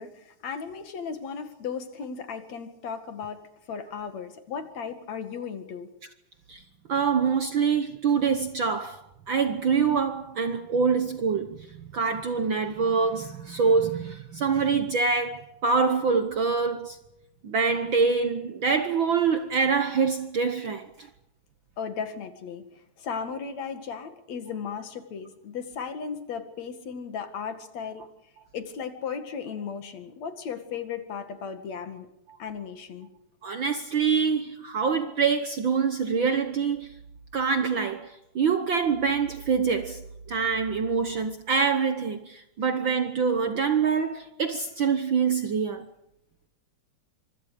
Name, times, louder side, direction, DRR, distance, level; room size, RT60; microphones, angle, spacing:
voice 1, 0.0-3.4 3.7-5.9 21.8-22.6 23.0-28.0 28.5-32.1 32.4-33.1, left 6 dB, 65° left, 3.2 m, -36 dB
voice 2, 6.9-17.0 17.4-21.1 32.3-32.4 33.4-36.9 37.3-45.9, right 5 dB, 55° right, 1.4 m, -25 dB
25.5 x 25.5 x 5.1 m
omnidirectional pair, 3.4 m